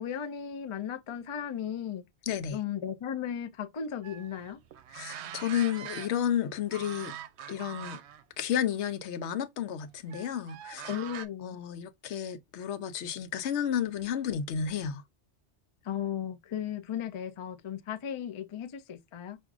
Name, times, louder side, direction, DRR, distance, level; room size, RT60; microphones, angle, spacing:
voice 1, 0.0-2.0 2.5-4.6 10.9-11.6 15.8-19.4, left 9 dB, 50° left, 0.3 m, -36 dB
voice 2, 2.3-2.6 4.9-7.2 7.5-8.0 8.4-11.0 11.4-15.0, left 9 dB, 80° left, 0.9 m, -32 dB
sound 1, 4.0-6.4 6.7-8.2 8.6-8.8 10.1-11.3, right 9 dB, 80° right, 0.8 m, -43 dB
5.9 x 2.5 x 2.4 m
omnidirectional pair, 1.1 m